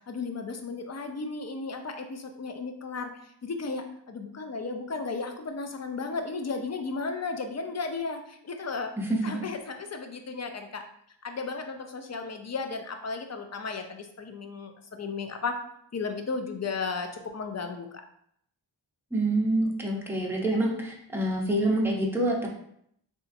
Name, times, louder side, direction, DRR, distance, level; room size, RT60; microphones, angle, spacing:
voice 1, 0.1-3.1 3.4-8.9 9.2-10.8 11.2-15.6 15.9-18.0, left 4 dB, 40° left, 6 dB, 0.4 m, -34 dB
voice 2, 19.1-22.5, right 1 dB, 5° right, -2 dB, 0.7 m, -26 dB
3.9 x 2.4 x 2.6 m, 0.71 s
wide cardioid pair, 60°, 45 cm